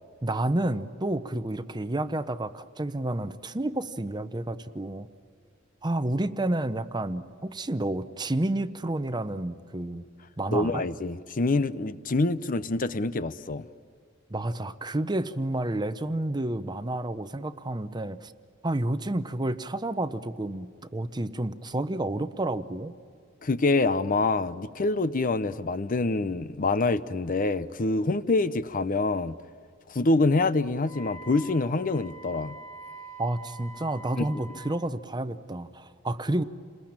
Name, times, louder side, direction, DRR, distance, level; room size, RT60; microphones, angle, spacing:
voice 1, 0.2-5.1 5.8-10.0 10.4-10.8 14.3-18.3 18.6-23.0 33.2-36.4, right 1 dB, 20° right, 11 dB, 0.8 m, -30 dB
voice 2, 10.5-13.7 23.4-29.4 29.9-32.5 34.2-34.3, left 3 dB, 45° left, 14 dB, 0.7 m, -26 dB
Wind instrument woodwind instrument, 30.8-34.9, right 2 dB, 5° left, 1.7 m, -45 dB
29.0 x 20.5 x 8.8 m, 2.2 s
head